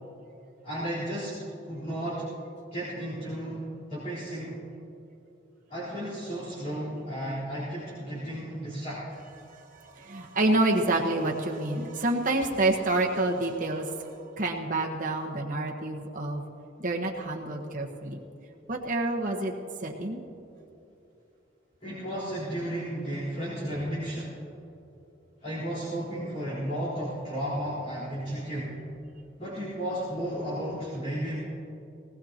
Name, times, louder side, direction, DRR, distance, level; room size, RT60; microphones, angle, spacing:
voice 1, 0.6-1.4 1.7-2.3 2.7-3.6 3.9-4.6 5.7-9.0 21.8-24.3 25.4-28.8 29.4-31.4, right 1 dB, 35° left, -13 dB, 4.0 m, -33 dB
voice 2, 9.5-16.5 16.8-18.2 18.7-19.5 19.8-20.2, right 2 dB, 40° right, 0 dB, 1.3 m, -28 dB
19.0 x 18.5 x 2.9 m, 2.8 s
head